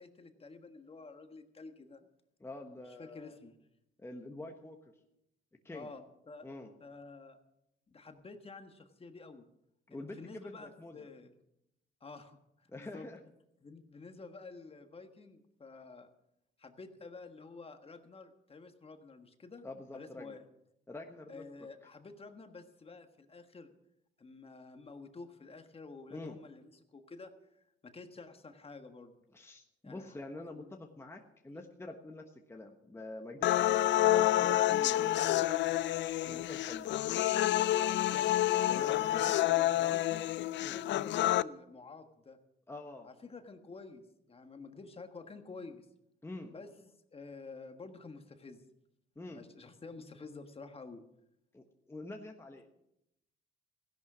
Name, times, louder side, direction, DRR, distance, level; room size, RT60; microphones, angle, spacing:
voice 1, 0.0-2.0 2.8-3.6 5.7-6.5 6.8-7.4 7.9-9.4 9.9-11.3 12.0-13.1 13.6-16.1 16.6-19.6 19.9-20.4 21.3-23.7 24.2-29.1 29.8-30.1 30.4-30.7 37.9-38.3 38.8-39.3 39.5-42.4 43.0-45.9 46.5-48.6 49.3-51.0, left 3 dB, 30° left, 7 dB, 1.5 m, -50 dB
voice 2, 2.4-3.3 4.0-4.9 5.6-5.9 6.4-6.7 9.9-11.0 12.7-13.2 19.6-20.4 20.9-21.4 26.1-26.4 29.3-36.9 38.7-39.3 39.8-40.0 40.6-40.8 42.7-43.1 46.2-46.5 49.1-49.4 51.5-52.7, left 2 dB, 10° left, 3 dB, 1.2 m, -47 dB
sound 1, 33.4-41.4, left 13 dB, 65° left, 0.5 m, -28 dB
16.0 x 11.0 x 6.2 m, 0.83 s
cardioid pair, 115°, 20 cm